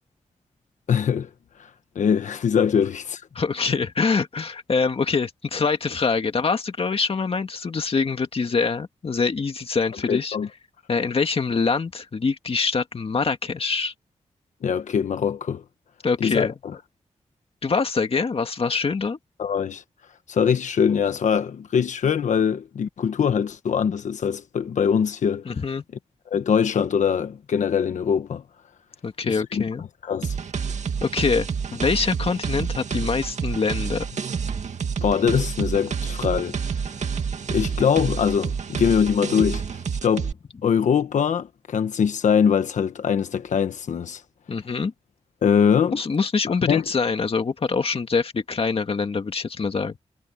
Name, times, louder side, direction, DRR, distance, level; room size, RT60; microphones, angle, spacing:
voice 1, 0.9-1.3 1.9-3.2 10.1-10.5 14.6-15.6 16.2-16.5 19.4-19.8 20.3-25.4 26.3-28.4 29.2-29.6 30.0-30.4 35.0-36.6 37.5-39.6 40.0-40.3 40.6-44.2 45.4-46.0 46.6-46.8, left 7 dB, 90° left, 1.2 m, -22 dB
voice 2, 3.3-10.4 10.9-13.9 16.0-16.5 17.6-19.2 25.5-25.8 29.0-29.8 31.0-31.5 31.7-34.2 44.5-44.9 45.9-49.9, left 4 dB, 50° left, 2.0 m, -24 dB
sound 1, 30.2-40.3, right 6 dB, 70° right, 2.2 m, -28 dB
wide cardioid pair, 90°, 12 cm